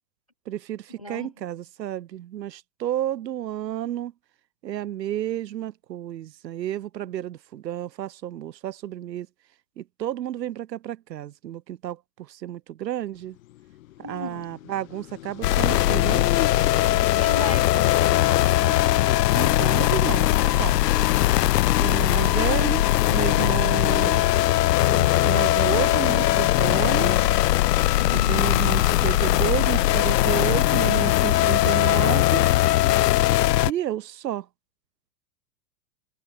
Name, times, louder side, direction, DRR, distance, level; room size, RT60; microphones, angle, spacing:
voice 1, 0.5-4.1 4.6-9.3 9.8-13.4 14.0-16.2 19.3-20.8 21.8-24.2 24.9-27.3 28.1-32.5 33.6-34.5, right 12 dB, 75° right, 3.6 m, -31 dB
voice 2, 1.0-1.3 14.0-14.5 17.1-18.3 27.9-28.5, left 1 dB, 25° left, 0.3 m, -37 dB
sound 1, 13.2-21.2 21.6-21.7 22.0-29.9, left 15 dB, 55° left, 1.1 m, -39 dB
sound 2, 15.4-33.7, left 15 dB, 70° left, 0.9 m, -20 dB
supercardioid pair, 175°, 50 cm